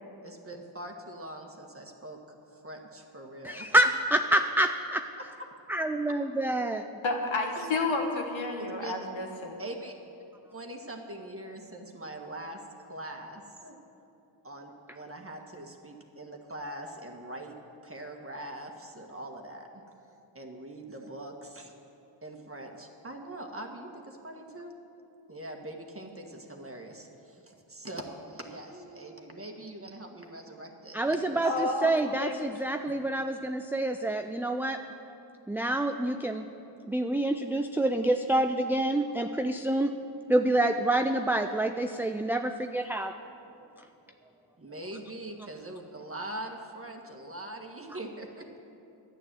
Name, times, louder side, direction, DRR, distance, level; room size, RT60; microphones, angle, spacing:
voice 1, 0.2-3.7 7.5-7.7 8.6-8.9 9.6-9.9 10.5-13.8 14.4-17.5 17.8-19.8 20.3-21.7 22.2-24.7 25.0-31.6 36.4-36.6 44.6-48.6, right 1 dB, 25° right, 2 dB, 1.7 m, -42 dB
voice 2, 3.4-5.0 5.7-6.8 30.9-34.8 35.5-36.4 36.9-39.9 40.3-43.1, right 1 dB, 5° right, 6 dB, 0.4 m, -27 dB
voice 3, 7.0-9.6 31.4-31.9 32.2-32.5 32.8-32.9, left 2 dB, 65° left, 2 dB, 1.7 m, -31 dB
11.0 x 9.1 x 7.6 m, 2.8 s
cardioid pair, 55°, 49 cm